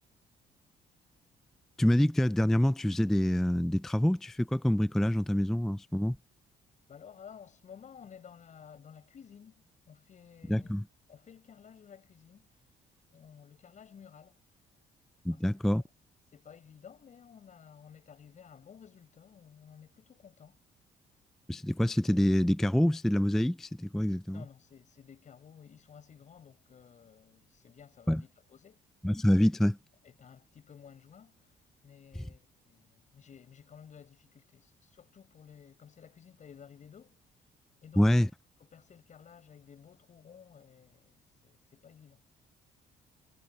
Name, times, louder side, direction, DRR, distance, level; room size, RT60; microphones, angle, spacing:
voice 1, 1.8-6.2 10.5-10.8 15.3-15.8 21.5-24.4 28.1-28.2 29.0-29.8 38.0-38.3, left 1 dB, ahead, 0.3 m, -26 dB
voice 2, 6.9-10.7 11.1-12.6 13.1-14.4 15.3-15.8 16.3-20.6 24.3-28.8 30.0-37.2 37.8-38.2 38.6-42.2, left 7 dB, 50° left, 8.0 m, -54 dB
cardioid pair, 100°, 16 cm